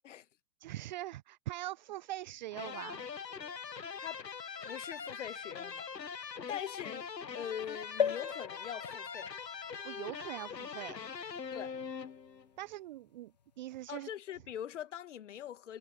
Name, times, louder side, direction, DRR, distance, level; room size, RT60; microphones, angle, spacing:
voice 1, 0.6-3.0 9.8-11.0 12.6-14.1, right 15 dB, 25° right, 0.9 m, -42 dB
sound 1, 2.5-12.5, left 6 dB, 85° left, 1.0 m, -42 dB
voice 2, 4.6-5.9 6.5-9.3 11.5-11.8 13.9-15.8, left 10 dB, 45° left, 1.8 m, -43 dB
sound 2, 8.0-11.7 12.3-12.4 12.6-12.7, left 7 dB, 30° left, 0.5 m, -38 dB
figure-of-eight pair, 125°, 49 cm